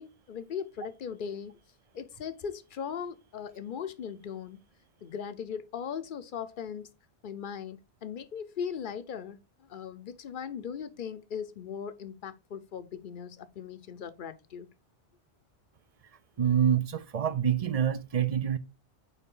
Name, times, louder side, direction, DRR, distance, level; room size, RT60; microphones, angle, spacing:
voice 1, 0.0-1.6 1.9-4.6 5.0-6.9 7.2-14.7, left 7 dB, 55° left, 0.8 m, -39 dB
voice 2, 16.4-18.6, right 9 dB, 50° right, 0.4 m, -26 dB
9.3 x 3.6 x 3.7 m
omnidirectional pair, 1.2 m